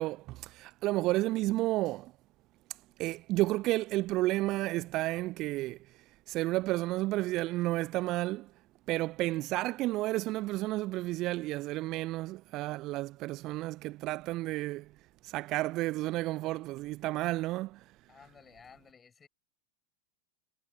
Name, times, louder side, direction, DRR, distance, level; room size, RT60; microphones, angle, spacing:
voice 1, 0.0-2.1 3.0-5.8 6.3-8.5 8.9-14.9 15.3-17.8, right 18 dB, 40° right, 0.7 m, -31 dB
voice 2, 18.1-19.3, left 6 dB, 20° left, 7.4 m, -55 dB
figure-of-eight pair, 90°, 0 cm